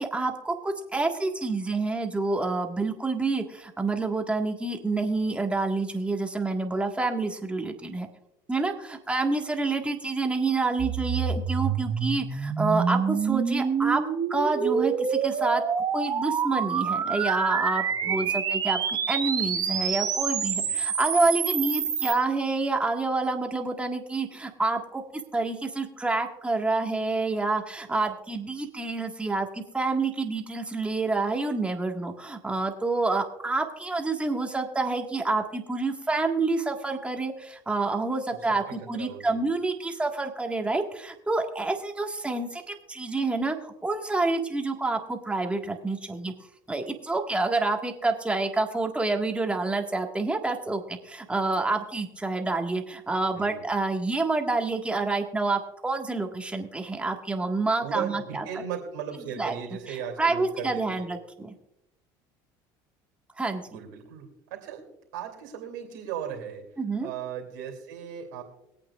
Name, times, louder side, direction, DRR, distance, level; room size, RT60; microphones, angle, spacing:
voice 1, 0.0-8.1 8.5-14.0 14.3-15.6 15.9-25.0 25.3-46.3 46.7-58.5 59.3-59.6 59.9-61.5 63.4-63.6 66.8-67.1, right 3 dB, 10° right, 3 dB, 1.7 m, -28 dB
sound 1, 10.8-22.1, right 7 dB, 35° right, 1.4 m, -27 dB
voice 2, 18.0-18.3 20.5-20.8 38.4-39.4 53.3-53.7 57.8-61.1 63.7-64.9 65.1-66.7 67.0-68.4, right 8 dB, 80° right, 1 dB, 2.8 m, -37 dB
22.5 x 8.7 x 2.5 m, 0.84 s
supercardioid pair, 95°, 10 cm